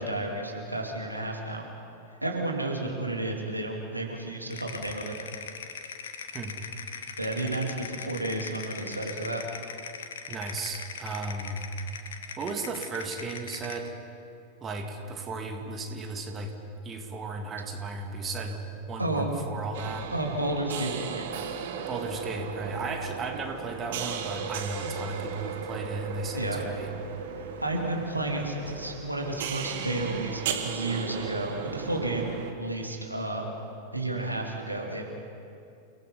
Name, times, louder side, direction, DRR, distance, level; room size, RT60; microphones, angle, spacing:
voice 1, 0.0-1.6 2.2-5.2 7.2-9.4 19.0-19.3 20.1-21.3 26.3-26.6 27.6-33.5 33.9-35.0, right 2 dB, 85° right, 0 dB, 2.8 m, -31 dB
sound 1, 4.5-13.9, left 6 dB, 65° left, 1.5 m, -40 dB
voice 2, 10.3-11.6 12.4-13.9 14.6-16.5 16.8-20.1 21.9-26.9, right 3 dB, 25° right, 3 dB, 2.3 m, -35 dB
sound 2, 19.7-32.5, right 6 dB, 55° right, 1.9 m, -36 dB
29.5 x 17.5 x 5.4 m, 2.6 s
figure-of-eight pair, 90°, 0 cm